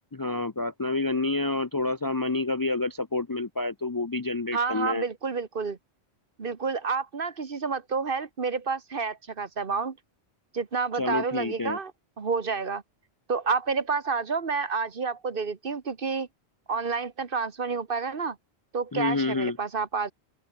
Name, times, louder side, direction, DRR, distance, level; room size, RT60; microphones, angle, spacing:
voice 1, 0.1-5.0 11.0-11.8 18.9-19.6, left 2 dB, 25° left, 0.5 m, -28 dB
voice 2, 4.5-5.8 6.4-10.0 10.5-11.9 12.2-12.8 13.3-16.3 16.7-18.4 18.7-20.1, right 5 dB, 55° right, 1.5 m, -29 dB
open air
omnidirectional pair, 1.1 m